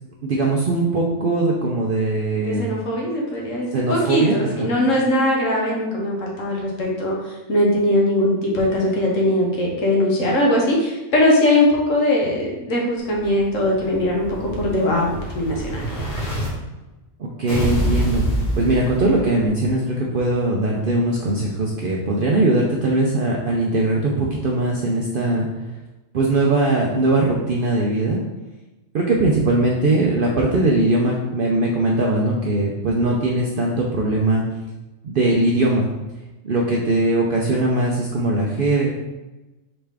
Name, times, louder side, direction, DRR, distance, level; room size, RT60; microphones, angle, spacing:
voice 1, 0.2-2.7 3.7-4.7 17.2-25.5 26.1-28.2 28.9-34.4 35.0-35.9 36.4-38.9, right 2 dB, 60° right, -2 dB, 0.6 m, -20 dB
voice 2, 2.4-16.1, left 1 dB, 70° left, -2 dB, 1.3 m, -20 dB
Explosion, 13.1-16.5 17.5-19.5, right 1 dB, 45° left, 1.6 m, -26 dB
3.9 x 3.4 x 3.4 m, 1.1 s
omnidirectional pair, 1.4 m